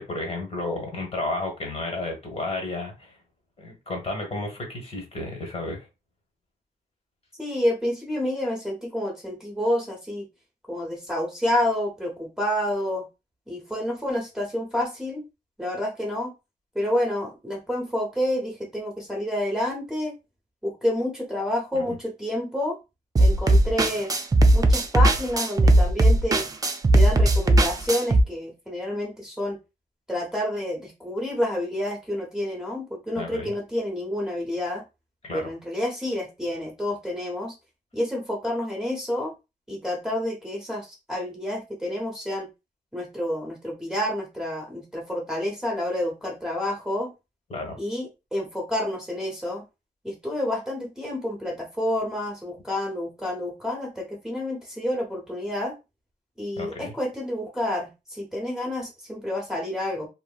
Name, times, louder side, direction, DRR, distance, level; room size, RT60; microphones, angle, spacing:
voice 1, 0.0-3.1 3.6-5.9 21.7-21.8 23.5-23.6 33.1-33.5 35.2-35.5 47.5-47.8 56.6-56.9, left 2 dB, 40° left, 2 dB, 1.1 m, -32 dB
voice 2, 7.4-10.3 10.7-13.1 13.5-15.2 15.6-16.3 16.7-20.1 20.6-22.8 23.2-24.1 24.5-26.5 26.9-29.6 30.1-34.8 35.3-37.5 37.9-39.3 39.7-42.5 42.9-47.1 47.8-49.6 50.0-55.7 56.4-60.1, left 1 dB, 5° right, -2 dB, 0.9 m, -29 dB
sound 1, 23.2-28.2, right 1 dB, 25° right, 0.4 m, -18 dB
2.8 x 2.6 x 2.3 m, 0.26 s
wide cardioid pair, 130°, 16 cm